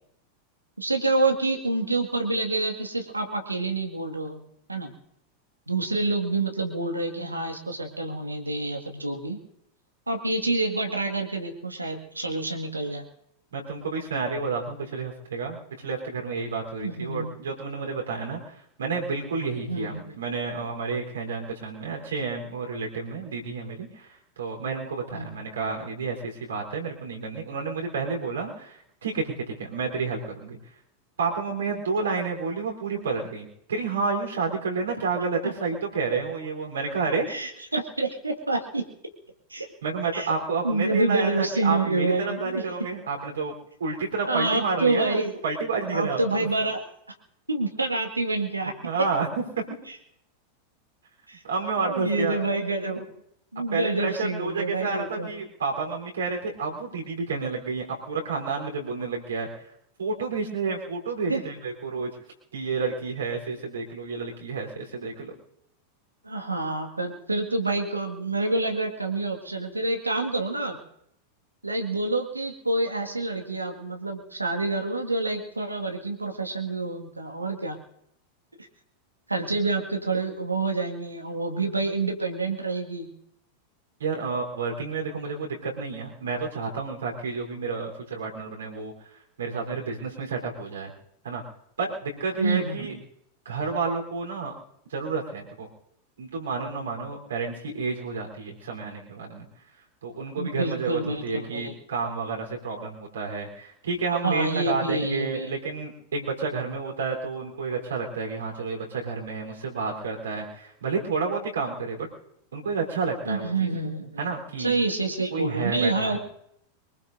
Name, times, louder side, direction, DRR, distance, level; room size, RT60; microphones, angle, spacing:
voice 1, 0.8-4.4 4.7-4.9 5.7-9.4 10.1-13.0 16.8-17.3 19.6-20.2 24.6-24.7 25.1-25.5 37.3-38.8 39.5-39.7 40.1-40.3 40.6-42.6 44.3-45.4 45.9-46.8 47.5-48.7 49.9-50.0 51.3-51.4 51.8-53.1 53.5-55.3 61.3-61.4 66.2-70.8 71.6-77.8 78.6-78.7 79.3-83.1 92.4-93.0 100.4-101.7 104.1-105.5 113.3-114.3 114.6-116.2, right 2 dB, 80° right, 4 dB, 1.9 m, -27 dB
voice 2, 13.5-18.5 18.8-24.1 24.4-29.3 29.6-30.6 31.2-37.3 39.8-43.5 43.8-46.5 48.8-49.3 49.6-49.7 51.4-52.4 53.7-59.5 60.0-62.1 62.5-65.3 84.0-88.9 89.4-90.9 91.2-91.4 91.8-92.9 93.5-94.5 94.9-95.7 96.2-99.5 100.0-112.1 112.5-113.7 114.2-114.7 115.3-116.2, right 4 dB, 65° right, 0 dB, 3.9 m, -30 dB
23.5 x 21.0 x 2.7 m, 0.75 s
figure-of-eight pair, 90°, 0 cm